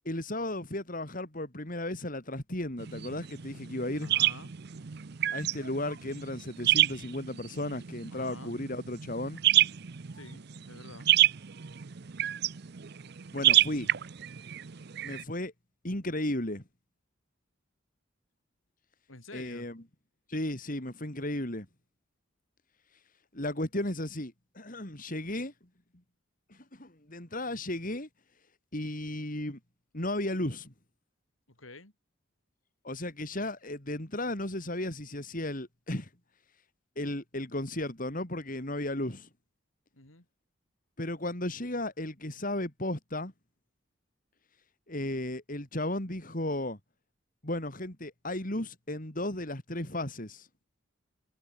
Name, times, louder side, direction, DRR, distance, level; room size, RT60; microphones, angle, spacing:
voice 1, 0.1-4.1 5.3-9.4 13.3-13.9 15.0-15.5 15.8-16.6 19.3-19.8 20.3-21.7 23.3-25.5 26.5-28.1 28.7-29.6 29.9-30.7 32.8-36.1 37.0-39.3 41.0-43.3 44.9-46.8 47.4-50.5, left 1 dB, 45° left, 3.9 m, -34 dB
sound 1, 2.8-15.2, right 13 dB, 55° right, 0.6 m, -29 dB
voice 2, 4.0-4.5 8.1-8.5 10.1-11.1 19.1-19.7 31.5-31.9 39.9-40.3, left 2 dB, 90° left, 5.4 m, -49 dB
head